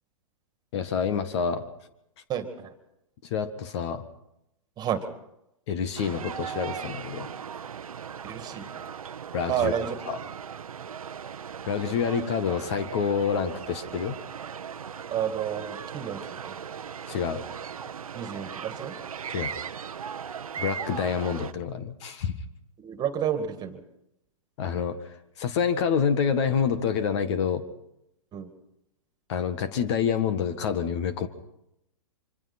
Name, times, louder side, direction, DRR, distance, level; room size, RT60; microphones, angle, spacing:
voice 1, 0.7-1.6 3.3-4.0 5.7-7.3 9.3-9.7 11.7-14.2 17.1-17.4 19.3-19.5 20.6-22.3 24.6-27.6 29.3-31.3, left 7 dB, 55° left, 11 dB, 1.8 m, -27 dB
voice 2, 2.3-2.8 4.8-5.1 8.2-8.7 9.5-10.0 15.1-16.6 18.1-19.0 22.8-23.8 28.3-28.5, right 9 dB, 25° right, 8 dB, 2.2 m, -30 dB
sound 1, 6.0-21.5, right 7 dB, 90° right, 0.9 m, -38 dB
26.0 x 25.0 x 4.4 m, 0.83 s
hypercardioid pair, 125°, 18 cm